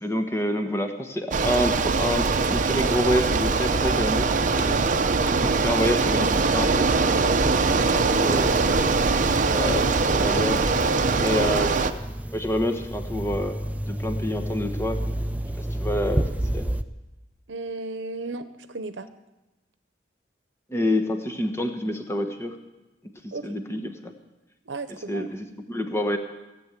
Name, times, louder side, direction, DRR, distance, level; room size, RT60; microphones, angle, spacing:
voice 1, 0.0-4.9 5.2-6.9 7.9-8.9 9.5-10.6 11.2-12.0 12.3-13.6 13.9-15.0 15.6-16.7 20.7-22.5 23.2-24.1 25.1-26.2, equal, 15° left, 6 dB, 1.2 m, -28 dB
Bicycle, 1.3-11.9, right 4 dB, 45° right, 0.7 m, -22 dB
sound 1, 8.1-16.8, right 1 dB, 10° right, 0.5 m, -31 dB
voice 2, 17.5-19.1 23.3-23.6 24.7-25.3, right 3 dB, 85° right, 11 dB, 0.8 m, -36 dB
17.0 x 8.0 x 8.3 m, 1.0 s
head